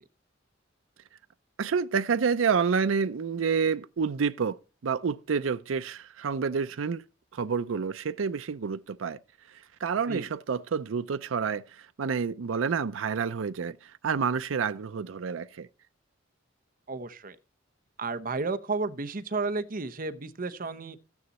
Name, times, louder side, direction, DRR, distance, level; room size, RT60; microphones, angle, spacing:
voice 1, 1.6-7.0 7.3-9.2 9.5-15.7, right 6 dB, 85° right, 0.5 m, -29 dB
voice 2, 16.9-17.4 18.0-21.0, right 3 dB, 45° right, 0.9 m, -32 dB
14.0 x 9.7 x 4.2 m
head